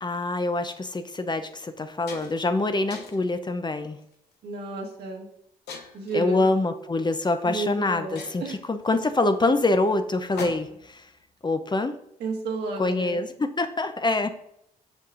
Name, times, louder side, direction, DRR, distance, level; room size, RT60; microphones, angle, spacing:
voice 1, 0.0-4.0 6.1-11.1 11.4-12.0 12.8-14.3, left 2 dB, 25° left, 9 dB, 0.6 m, -25 dB
sound 1, 0.6-0.8 1.4-1.5 1.8-2.5 2.9-3.4 4.0-4.3 5.7-6.2 7.3-7.4 7.8-7.9 8.2-10.9, left 4 dB, 75° left, 0.8 m, -41 dB
voice 2, 4.4-5.3 5.9-6.4 7.4-8.6 12.2-13.2, right 3 dB, 80° right, -1 dB, 1.4 m, -32 dB
8.2 x 5.4 x 2.5 m, 0.80 s
supercardioid pair, 50°, 17 cm